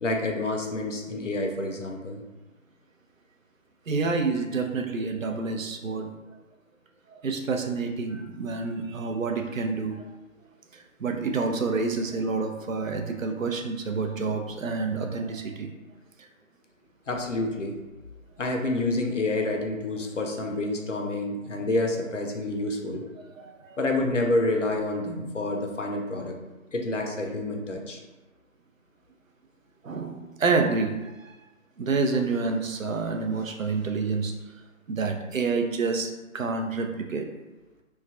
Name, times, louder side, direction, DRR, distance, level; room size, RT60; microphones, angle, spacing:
voice 1, 0.0-2.2 17.1-17.7 18.4-23.1 23.8-26.4 26.7-28.0, left 2 dB, 60° left, 2 dB, 0.6 m, -28 dB
voice 2, 3.9-6.1 7.1-10.0 10.7-15.7 23.4-23.8 29.8-31.4 31.8-34.4 34.9-37.3, right 4 dB, 70° right, 4 dB, 0.5 m, -28 dB
3.0 x 2.3 x 2.4 m, 1.1 s
figure-of-eight pair, 160°, 41 cm